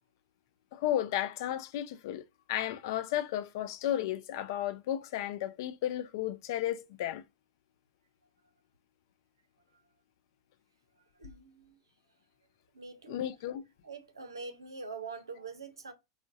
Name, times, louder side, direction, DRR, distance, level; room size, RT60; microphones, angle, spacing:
voice 1, 0.7-2.2 2.5-7.2 13.1-13.6, left 12 dB, 60° left, 0.4 m, -33 dB
voice 2, 11.2-11.8 12.7-13.2 13.8-15.9, right 4 dB, 90° right, 0.5 m, -44 dB
2.5 x 2.1 x 3.5 m
hypercardioid pair, 95°, 2 cm